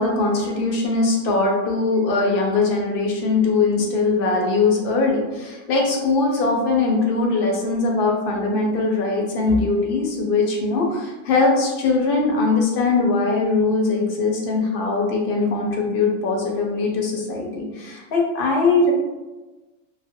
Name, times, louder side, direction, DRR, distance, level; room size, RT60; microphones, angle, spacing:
voice 1, 0.0-18.9, left 3 dB, 60° left, 0 dB, 0.7 m, -21 dB
2.4 x 2.1 x 2.7 m, 1.1 s
omnidirectional pair, 1.2 m